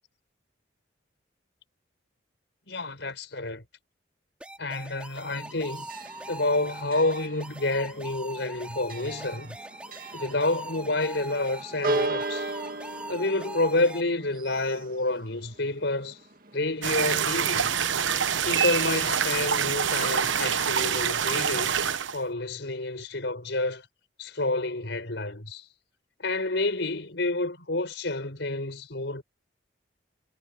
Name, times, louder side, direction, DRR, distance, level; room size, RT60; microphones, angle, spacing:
voice 1, 2.7-3.6 4.6-5.9 6.3-9.6 10.1-12.5 13.1-16.2 16.5-17.7 18.4-21.8 22.1-23.9 24.2-25.6 26.2-29.2, left 2 dB, 70° left, 4.6 m, -29 dB
sound 1, 4.4-14.0, right 1 dB, 5° right, 4.1 m, -42 dB
Church bell, 5.3-20.4, right 2 dB, 50° right, 2.1 m, -38 dB
sound 2, 16.8-22.2, right 7 dB, 85° right, 1.1 m, -26 dB
head